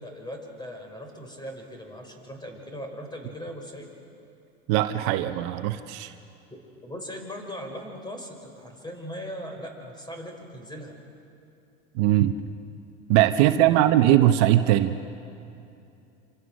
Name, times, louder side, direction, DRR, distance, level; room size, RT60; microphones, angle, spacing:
voice 1, 0.0-3.9 6.5-10.9 13.6-14.2, equal, 15° left, 3 dB, 5.5 m, -39 dB
voice 2, 4.7-6.1 11.9-12.3 13.1-15.0, right 13 dB, 60° right, 8 dB, 1.1 m, -20 dB
27.0 x 26.5 x 6.5 m, 2.7 s
hypercardioid pair, 95°, 30 cm